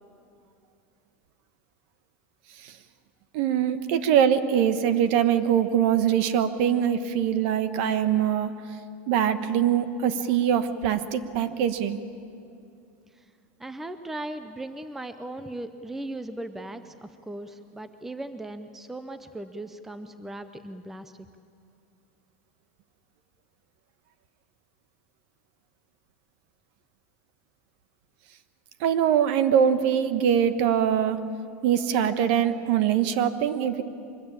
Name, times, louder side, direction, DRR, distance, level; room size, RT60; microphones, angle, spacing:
voice 1, 3.3-8.5 9.1-12.0 28.8-31.2 31.6-33.8, right 9 dB, 55° right, 11 dB, 1.2 m, -23 dB
voice 2, 13.6-21.3, right 1 dB, 5° right, 10 dB, 0.5 m, -38 dB
24.0 x 20.5 x 8.7 m, 2.5 s
supercardioid pair, 170°, 7 cm